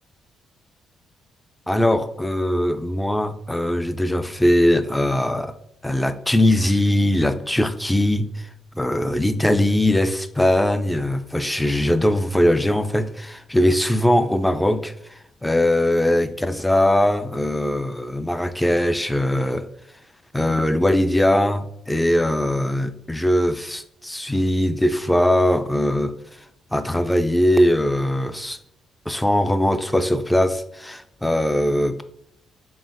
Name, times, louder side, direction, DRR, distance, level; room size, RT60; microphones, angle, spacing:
voice 1, 1.7-5.5 5.8-8.5 8.8-19.6 20.3-26.1 26.7-28.6 29.1-32.0, left 1 dB, 5° left, 10 dB, 0.3 m, -20 dB
3.9 x 3.8 x 2.5 m, 0.75 s
cardioid pair, 90°, 0 cm